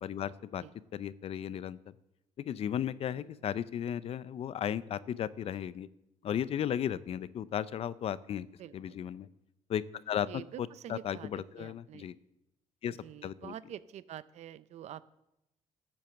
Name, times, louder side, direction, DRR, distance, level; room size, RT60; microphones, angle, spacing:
voice 1, 0.0-0.6 0.9-1.9 2.4-5.9 6.2-8.5 8.7-9.3 9.7-12.2 12.8-13.5, left 9 dB, 50° left, 17 dB, 0.5 m, -35 dB
voice 2, 8.6-9.0 10.3-12.1 13.0-15.0, right 11 dB, 65° right, 16 dB, 0.6 m, -47 dB
12.5 x 7.5 x 7.0 m, 0.87 s
cardioid pair, 100°, 13 cm